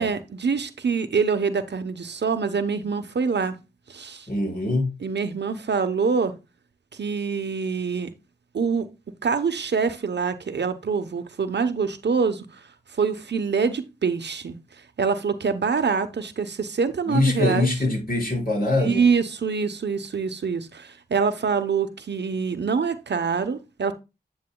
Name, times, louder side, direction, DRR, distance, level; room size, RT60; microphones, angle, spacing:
voice 1, 0.0-3.6 3.9-4.3 5.0-6.3 6.9-8.1 8.5-8.9 9.2-12.6 12.9-14.6 15.0-17.7 18.8-23.9, right 5 dB, 85° right, 0.9 m, -25 dB
voice 2, 4.3-4.9 17.1-19.0, left 2 dB, 60° left, 5.5 m, -23 dB
9.6 x 7.4 x 2.3 m
wide cardioid pair, 60°, 17 cm